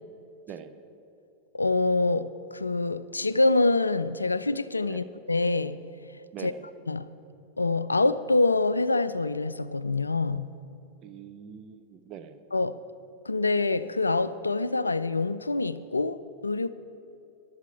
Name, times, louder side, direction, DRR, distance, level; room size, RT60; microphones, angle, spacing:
voice 1, 1.5-5.9 6.4-6.5 6.9-7.1 7.6-10.5 12.5-12.8 13.2-16.7, left 3 dB, 80° left, 15 dB, 0.3 m, -26 dB
voice 2, 6.3-6.6 11.0-12.4, right 8 dB, 35° right, 9 dB, 0.8 m, -43 dB
14.0 x 11.5 x 4.6 m, 2.7 s
figure-of-eight pair, 90°, 0 cm